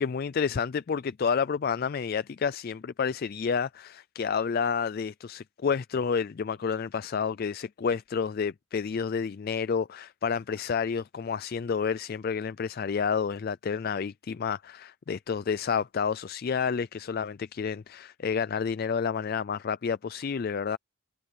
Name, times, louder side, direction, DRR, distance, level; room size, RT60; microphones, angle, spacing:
voice 1, 0.0-20.8, left 6 dB, 45° left, 0.3 m, -30 dB
head